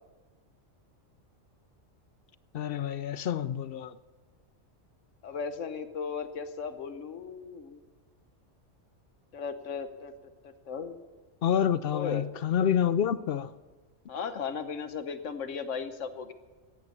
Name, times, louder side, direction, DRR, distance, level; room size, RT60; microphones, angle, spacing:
voice 1, 2.5-3.9 11.4-13.5, left 9 dB, 60° left, 0.7 m, -28 dB
voice 2, 5.2-7.8 9.3-10.1 10.4-11.0 11.9-12.3 14.1-16.3, left 6 dB, 80° left, 1.3 m, -36 dB
15.5 x 10.0 x 6.8 m
omnidirectional pair, 1.3 m